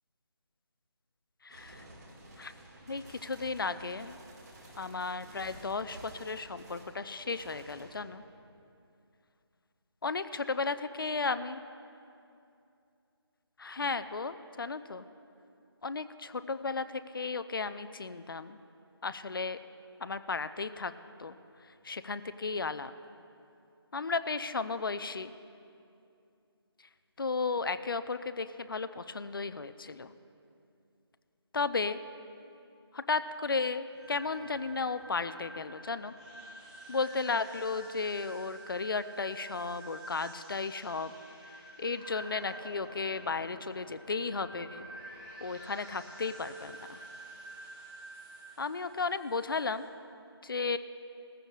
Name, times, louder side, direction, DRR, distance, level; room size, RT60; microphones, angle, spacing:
voice 1, 1.4-1.8 2.4-2.5 2.9-4.2 4.8-8.2 10.0-11.6 13.6-15.1 15.8-18.6 19.0-19.6 20.0-20.9 21.2-22.9 23.9-25.3 27.2-30.1 31.5-32.0 32.9-36.1 36.9-41.2 41.8-44.9 45.4-47.0 48.6-49.9 50.4-50.8, left 4 dB, 55° left, 12 dB, 0.6 m, -34 dB
sound 1, 1.5-8.0, right 1 dB, 40° right, 1.9 m, -52 dB
sound 2, 33.9-49.9, right 1 dB, 5° right, 1.3 m, -49 dB
20.0 x 15.0 x 2.4 m, 2.6 s
figure-of-eight pair, 165°, 14 cm